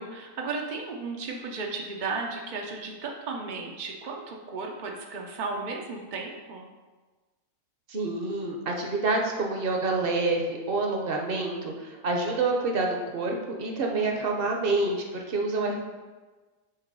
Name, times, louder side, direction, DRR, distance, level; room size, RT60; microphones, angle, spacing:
voice 1, 0.0-6.7, right 4 dB, 75° right, 1 dB, 0.4 m, -34 dB
voice 2, 7.9-15.7, right 3 dB, 50° right, 1 dB, 0.7 m, -27 dB
6.8 x 3.0 x 5.3 m, 1.3 s
omnidirectional pair, 1.7 m